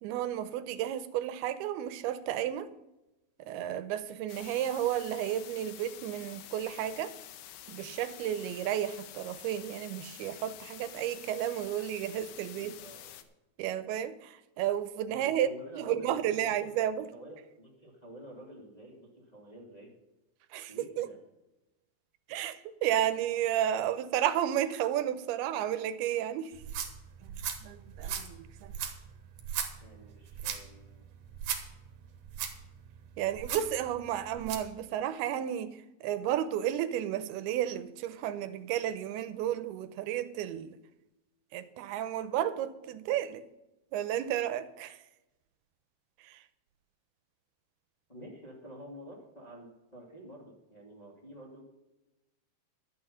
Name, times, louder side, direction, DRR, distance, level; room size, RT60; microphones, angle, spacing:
voice 1, 0.0-2.7 3.4-7.1 7.7-12.7 13.6-15.5 15.8-17.1 20.5-21.1 22.3-26.5 27.2-28.7 33.2-40.8 41.5-43.4 43.9-45.0 46.2-46.4, right 11 dB, 85° right, 2.7 m, -32 dB
sound 1, 4.3-13.2, left 12 dB, 80° left, 2.7 m, -48 dB
voice 2, 12.6-13.2 15.1-19.9 20.7-21.2 29.8-31.1 48.1-51.6, right 1 dB, 15° left, 1.9 m, -49 dB
sound 2, 26.5-34.7, right 8 dB, 65° right, 2.4 m, -39 dB
11.5 x 9.3 x 5.6 m
omnidirectional pair, 4.5 m